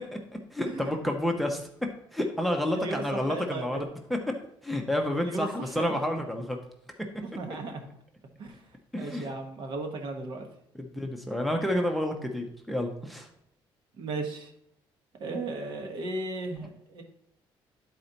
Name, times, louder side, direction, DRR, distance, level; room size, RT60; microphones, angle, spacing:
voice 1, 0.5-1.7 2.1-4.2 4.6-6.6 8.9-9.3 10.7-13.3, left 1 dB, ahead, 3 dB, 0.7 m, -29 dB
voice 2, 3.3-3.8 5.2-6.0 7.2-7.9 8.4-8.6 9.0-10.4 14.0-14.5 15.2-17.0, right 2 dB, 60° right, 3 dB, 1.2 m, -35 dB
10.5 x 4.3 x 3.9 m, 0.73 s
cardioid pair, 145°, 9 cm